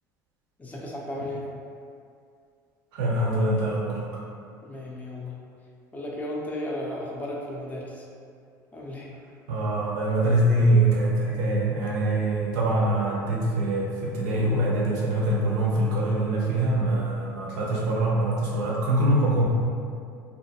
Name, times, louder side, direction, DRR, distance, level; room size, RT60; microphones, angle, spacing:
voice 1, 0.6-1.4 4.6-5.4 5.9-8.0 8.7-9.1, left 1 dB, 15° left, -3 dB, 0.5 m, -34 dB
voice 2, 2.9-4.0 9.5-19.5, right 1 dB, 70° right, -4 dB, 0.6 m, -24 dB
2.4 x 2.1 x 2.8 m, 2.4 s
hypercardioid pair, 70°, 10 cm